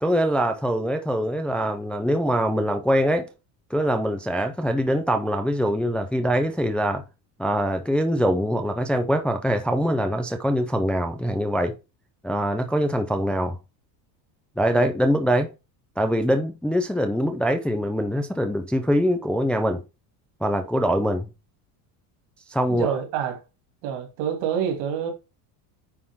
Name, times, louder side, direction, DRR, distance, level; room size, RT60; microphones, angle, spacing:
voice 1, 0.0-3.3 3.7-7.0 7.4-11.7 12.2-13.6 14.6-15.5 16.0-19.8 20.4-21.3 22.5-22.9, equal, ahead, 0.5 m, -23 dB
voice 2, 22.7-23.4 23.8-25.1, right 8 dB, 75° right, 2.8 m, -27 dB
9.6 x 4.3 x 3.7 m
cardioid pair, 140°, 49 cm